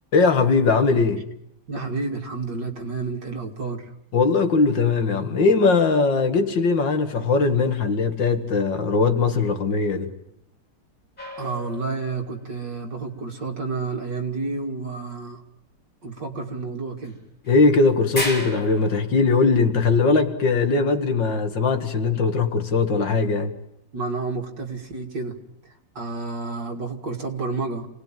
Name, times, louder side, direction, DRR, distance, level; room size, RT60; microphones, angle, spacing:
voice 1, 0.1-1.3 4.1-10.1 17.5-23.5, left 4 dB, 75° left, 2.5 m, -20 dB
voice 2, 1.7-3.9 11.4-15.4 16.0-17.2 23.9-25.4 25.6-27.9, right 3 dB, 70° right, 3.3 m, -30 dB
sound 1, 11.2-12.5 17.0-17.1 17.4-17.5 18.1-19.1, left 1 dB, 25° left, 4.9 m, -32 dB
27.5 x 19.5 x 9.2 m
omnidirectional pair, 2.0 m